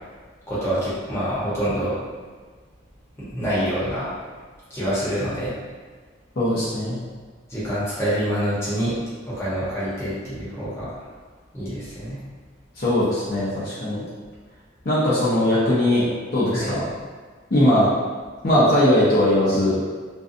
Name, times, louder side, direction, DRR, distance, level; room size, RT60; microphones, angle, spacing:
voice 1, 0.5-1.9 3.2-4.1 4.7-5.5 7.5-8.9 9.3-11.0 11.5-12.2 16.5-16.7, equal, 15° left, -11 dB, 0.9 m, -26 dB
voice 2, 6.4-7.0 12.8-14.0 14.8-16.1 16.3-16.9 17.5-17.9 18.4-19.8, left 1 dB, 50° left, -9 dB, 0.6 m, -19 dB
2.6 x 2.2 x 2.5 m, 1.5 s
head